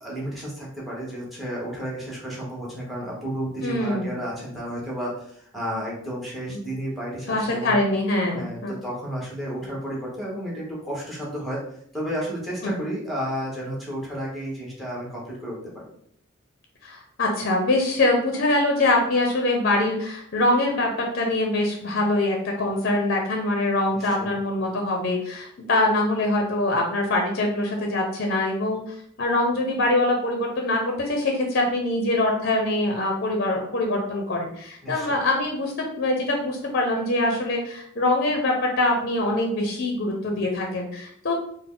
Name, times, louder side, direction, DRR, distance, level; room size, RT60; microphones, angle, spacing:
voice 1, 0.0-7.8 8.3-11.6 11.9-15.8 24.0-24.3 34.8-35.1, equal, ahead, -4 dB, 1.1 m, -32 dB
voice 2, 3.6-4.1 6.5-6.6 7.3-8.7 12.6-12.7 16.8-41.3, left 2 dB, 50° left, 1 dB, 0.6 m, -24 dB
3.9 x 2.1 x 3.7 m, 0.66 s
head